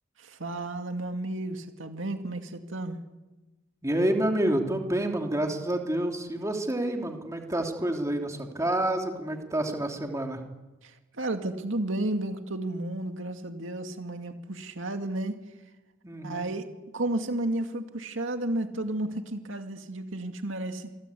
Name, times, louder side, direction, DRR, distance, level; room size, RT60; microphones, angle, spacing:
voice 1, 0.2-3.0 10.8-15.4 16.2-16.7 16.9-20.9, right 1 dB, 75° right, 5 dB, 2.3 m, -32 dB
voice 2, 3.8-10.4 16.0-16.5, right 1 dB, 15° right, 2 dB, 3.1 m, -28 dB
27.0 x 23.5 x 8.5 m, 1.1 s
head